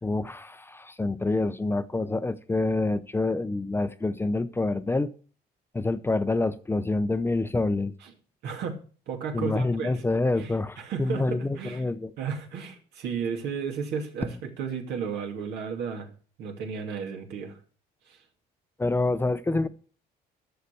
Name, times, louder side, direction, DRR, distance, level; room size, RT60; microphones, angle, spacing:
voice 1, 0.0-5.1 5.7-7.9 9.3-12.1 18.8-19.7, left 2 dB, 15° left, 0.6 m, -27 dB
voice 2, 8.4-10.0 10.4-11.9 12.2-16.1 16.4-17.6 18.1-18.2, right 6 dB, 80° right, 2.6 m, -34 dB
11.5 x 6.6 x 6.8 m
cardioid pair, 110°, 17 cm